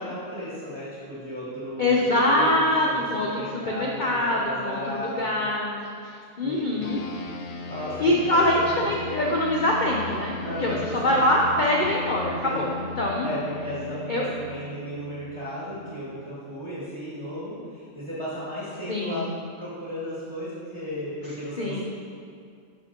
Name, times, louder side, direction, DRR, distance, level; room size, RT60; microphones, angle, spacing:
voice 1, 0.0-2.9 3.2-5.5 6.4-6.8 7.7-8.9 10.4-11.2 12.4-12.6 13.2-19.3 19.6-21.8, equal, 20° right, -11 dB, 2.0 m, -35 dB
voice 2, 1.8-7.0 8.0-13.3 14.1-14.3 18.9-19.4 21.6-21.8, left 1 dB, 45° left, -2 dB, 0.7 m, -24 dB
sound 1, 6.8-16.5, left 3 dB, 80° left, 0.3 m, -38 dB
10.0 x 6.7 x 2.9 m, 2.2 s
omnidirectional pair, 1.5 m